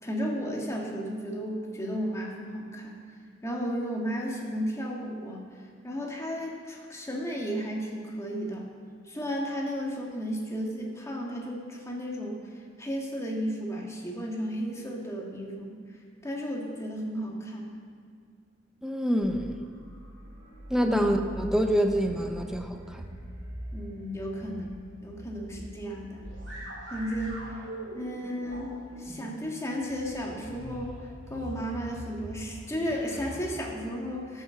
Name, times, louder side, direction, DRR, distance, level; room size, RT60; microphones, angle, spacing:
voice 1, 0.0-3.0 3.4-5.5 5.8-8.7 9.0-12.4 12.8-15.7 16.2-17.7 23.7-24.8 25.0-26.2 26.9-27.4 27.9-28.7 29.0-34.4, equal, 15° left, -1 dB, 1.7 m, -34 dB
voice 2, 18.8-19.6 20.7-23.0, equal, 5° right, 4 dB, 0.8 m, -26 dB
sound 1, 19.2-33.5, right 1 dB, 75° right, 3.6 m, -43 dB
13.5 x 6.5 x 6.8 m, 2.2 s
head